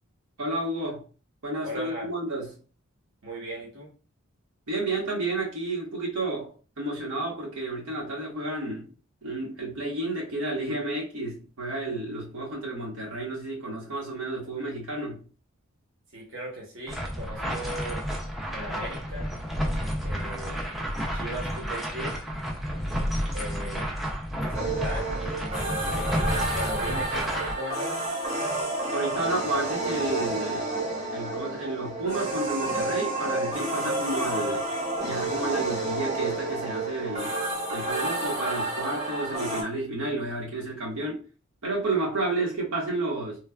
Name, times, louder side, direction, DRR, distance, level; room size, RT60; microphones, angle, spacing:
voice 1, 0.4-1.0 1.4-2.5 4.7-8.9 9.2-15.2 28.9-30.7 31.1-34.7 35.0-37.3 37.7-41.2 41.6-43.4, right 2 dB, 90° right, 1.2 m, -31 dB
voice 2, 1.6-2.1 3.2-3.9 16.1-18.0 18.5-19.3 20.0-20.6 21.1-22.1 23.3-23.9 24.4-25.1 25.4-28.0, right 1 dB, 60° right, 0.9 m, -38 dB
sound 1, 16.9-27.5, equal, ahead, 0.3 m, -31 dB
sound 2, 24.5-39.6, right 2 dB, 30° right, 0.8 m, -30 dB
3.1 x 2.3 x 2.2 m
head